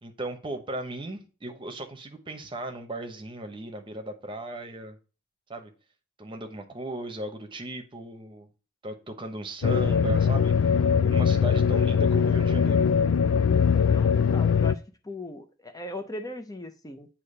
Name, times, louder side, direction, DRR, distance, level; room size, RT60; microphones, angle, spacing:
voice 1, 0.0-5.0 5.5-5.7 6.2-8.5 8.8-10.5 11.1-12.9, right 1 dB, 25° right, 1.0 m, -37 dB
sound 1, 9.6-14.7, left 6 dB, 75° left, 0.4 m, -21 dB
voice 2, 13.9-17.1, left 1 dB, 20° left, 0.7 m, -39 dB
8.4 x 2.9 x 5.4 m
head